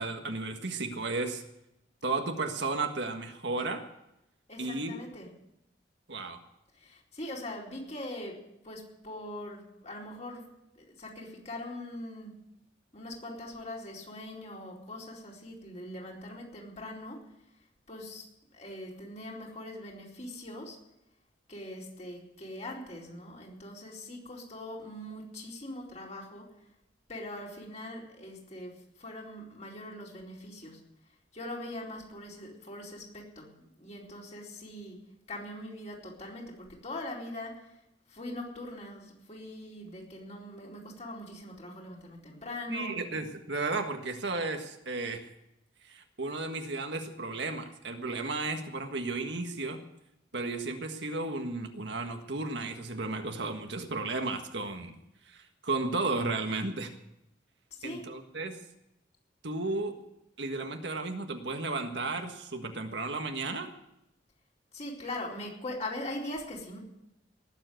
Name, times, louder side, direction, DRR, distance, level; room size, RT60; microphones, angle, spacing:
voice 1, 0.0-1.4 2.0-3.9 4.6-4.9 6.1-6.4 42.7-45.2 45.8-49.8 50.3-55.0 55.3-56.9 57.8-58.6 59.4-60.0 60.4-63.7, right 3 dB, 65° right, 5 dB, 1.6 m, -34 dB
voice 2, 4.5-5.3 6.7-8.4 8.6-10.5 10.8-12.3 12.9-17.2 17.9-18.2 18.5-20.8 21.5-26.5 27.1-28.7 29.0-30.8 31.3-35.0 35.3-37.5 38.1-42.9 57.7-58.1 64.7-66.8, left 1 dB, 35° left, -3 dB, 4.3 m, -41 dB
19.0 x 7.7 x 9.2 m, 0.85 s
head